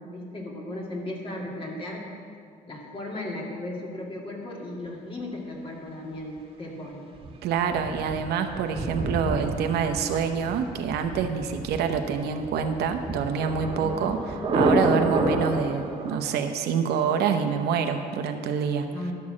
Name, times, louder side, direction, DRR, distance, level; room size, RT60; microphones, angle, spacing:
voice 1, 0.0-2.1 2.7-7.0 13.8-14.2 18.9-19.1, left 1 dB, 30° left, -2 dB, 2.2 m, -36 dB
Thunder, 7.2-16.2, right 2 dB, 30° right, 1.7 m, -29 dB
voice 2, 7.4-14.2 14.5-18.9, right 6 dB, 75° right, 6 dB, 0.8 m, -26 dB
12.0 x 4.7 x 7.3 m, 2.2 s
cardioid pair, 110°, 17 cm